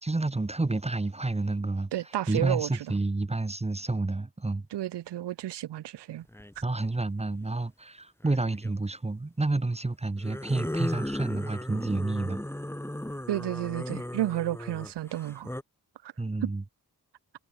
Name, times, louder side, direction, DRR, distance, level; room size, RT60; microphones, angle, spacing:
voice 1, 0.0-1.9 2.3-4.7 6.6-12.4 16.2-16.6, right 2 dB, 15° right, 0.9 m, -29 dB
voice 2, 1.9-2.7 4.7-6.3 13.3-15.5 16.0-16.1 16.4-16.5, right 13 dB, 85° right, 0.5 m, -31 dB
sound 1, 6.3-6.6 8.2-8.7 10.2-15.6, left 1 dB, 5° left, 1.8 m, -36 dB
wide cardioid pair, 90°, 40 cm